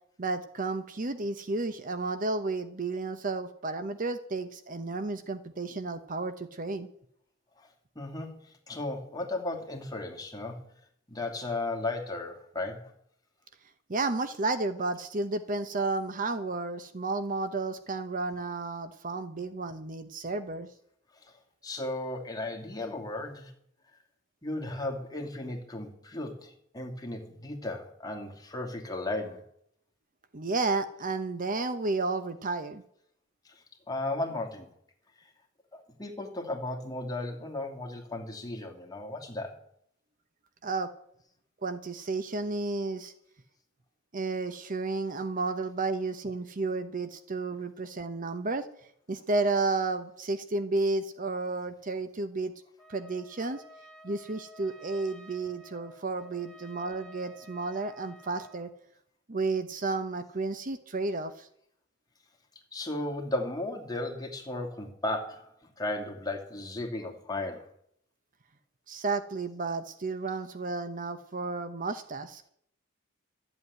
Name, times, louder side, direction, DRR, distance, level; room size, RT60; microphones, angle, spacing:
voice 1, 0.2-6.9 13.9-20.7 30.3-32.8 40.6-40.9 41.6-43.1 44.1-48.7 49.1-52.5 52.9-53.6 54.0-58.7 59.3-61.5 68.9-72.4, right 3 dB, 40° right, 10 dB, 0.9 m, -32 dB
voice 2, 7.9-10.6 11.1-12.9 21.2-23.5 24.4-29.4 33.4-33.6 33.9-34.7 35.2-35.3 35.7-39.6 62.7-67.7, left 2 dB, 20° left, 1 dB, 2.6 m, -35 dB
Trumpet, 52.8-58.7, equal, 5° left, 2.4 m, -52 dB
13.0 x 8.1 x 9.7 m, 0.68 s
head